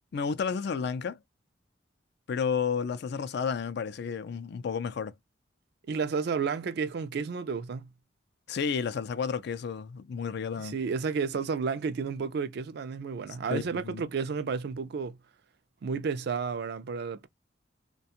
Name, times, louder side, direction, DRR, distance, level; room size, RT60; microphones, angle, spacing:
voice 1, 0.1-1.2 2.3-5.1 8.5-10.8 13.5-14.0, left 6 dB, 65° left, 0.4 m, -31 dB
voice 2, 5.9-7.9 10.6-15.2 15.8-17.3, right 5 dB, 60° right, 0.4 m, -31 dB
2.4 x 2.2 x 2.7 m
head